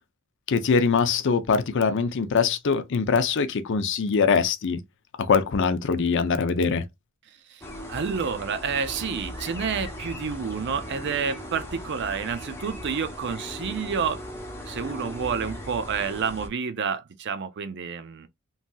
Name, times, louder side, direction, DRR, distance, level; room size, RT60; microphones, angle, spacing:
voice 1, 0.5-4.8 5.2-6.8, left 5 dB, 60° left, 0.5 m, -23 dB
sound 1, 7.6-16.5, equal, 10° left, 0.7 m, -38 dB
voice 2, 7.9-14.2 14.7-18.3, right 6 dB, 55° right, 0.5 m, -29 dB
3.1 x 2.7 x 2.2 m
head